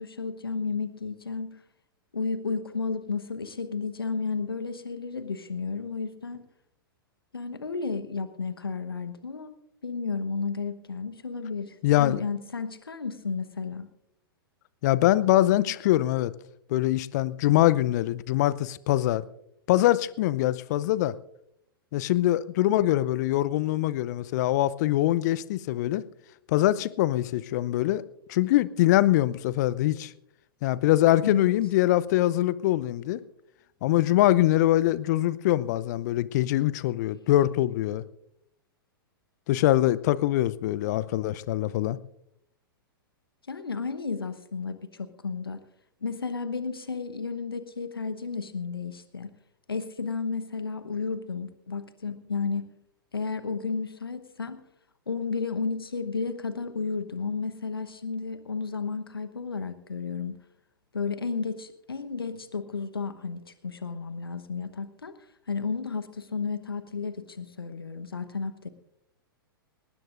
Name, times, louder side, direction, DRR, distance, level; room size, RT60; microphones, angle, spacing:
voice 1, 0.0-1.6 2.1-6.4 7.3-9.6 9.8-13.9 31.2-31.5 43.5-45.6 46.0-49.3 49.7-52.7 53.1-54.6 55.1-60.4 60.9-65.1 65.5-68.7, left 4 dB, 80° left, 1.1 m, -32 dB
voice 2, 11.8-12.2 14.8-16.3 16.7-19.2 19.7-21.1 21.9-26.0 26.5-28.0 28.3-30.1 30.6-33.2 33.8-38.0 39.5-42.0, left 14 dB, 50° left, 0.7 m, -23 dB
20.0 x 18.5 x 2.5 m
figure-of-eight pair, 105°, 12 cm